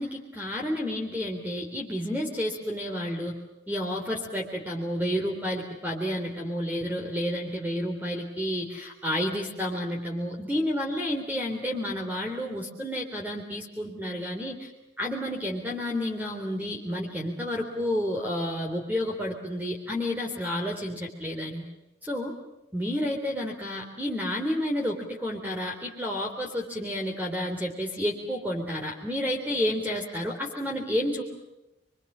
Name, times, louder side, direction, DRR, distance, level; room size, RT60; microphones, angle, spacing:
voice 1, 0.0-3.4 3.7-14.7 15.0-21.7 22.0-22.3 22.7-31.2, left 1 dB, 10° right, 1 dB, 3.6 m, -30 dB
29.5 x 23.5 x 7.5 m, 0.96 s
head